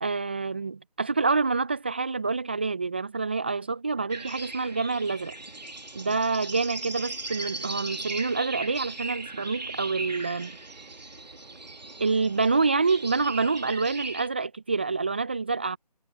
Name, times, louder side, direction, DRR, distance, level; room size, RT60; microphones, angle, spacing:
voice 1, 0.0-5.3 5.9-10.5 12.0-15.8, right 4 dB, 15° right, 0.6 m, -27 dB
sound 1, 4.1-14.3, right 3 dB, 80° right, 2.0 m, -38 dB
figure-of-eight pair, 160°, 21 cm